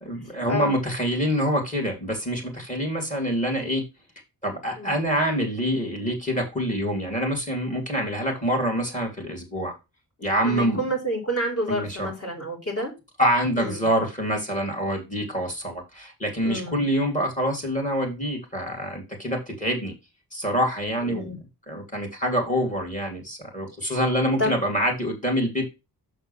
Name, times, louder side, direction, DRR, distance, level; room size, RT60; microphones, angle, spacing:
voice 1, 0.0-3.8 4.4-9.7 10.2-10.8 11.7-12.1 13.2-19.9 20.3-21.3 21.7-25.6, equal, 20° left, 1 dB, 2.8 m, -26 dB
voice 2, 10.4-12.9 13.6-13.8 16.4-16.8 21.0-21.4 23.8-23.9 24.4-24.6, equal, 35° left, 0 dB, 3.9 m, -29 dB
6.6 x 4.4 x 5.5 m, 0.26 s
wide cardioid pair, 130°, 38 cm